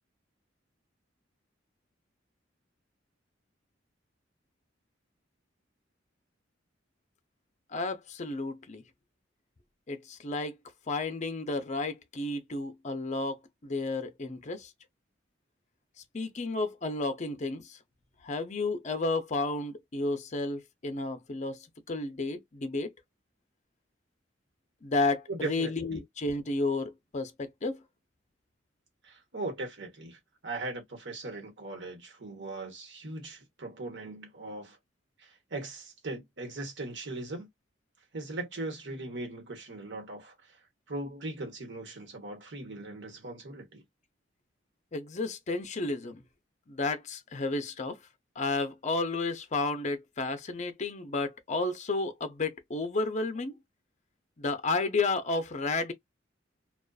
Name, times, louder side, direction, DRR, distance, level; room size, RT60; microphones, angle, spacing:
voice 1, 7.7-8.8 9.9-10.6 10.9-14.7 16.1-17.8 18.2-22.9 24.8-27.8 44.9-46.2 46.7-48.0 48.4-53.6 54.4-55.9, left 3 dB, 40° left, 0.6 m, -32 dB
voice 2, 25.3-26.0 29.0-34.8 35.2-37.5 38.1-40.3 40.9-43.8, right 2 dB, 65° right, 1.2 m, -39 dB
2.4 x 2.3 x 2.3 m
head